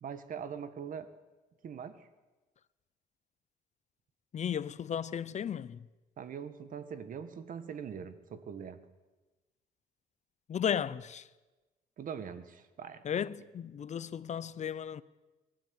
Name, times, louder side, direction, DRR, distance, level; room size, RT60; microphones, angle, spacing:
voice 1, 0.0-1.1 1.6-2.1 6.2-8.8 12.0-13.0, right 7 dB, 60° right, 1.7 m, -42 dB
voice 2, 4.3-5.8 10.5-11.3 13.0-15.0, left 8 dB, 50° left, 0.7 m, -34 dB
22.5 x 12.5 x 9.6 m
cardioid pair, 95°, 16 cm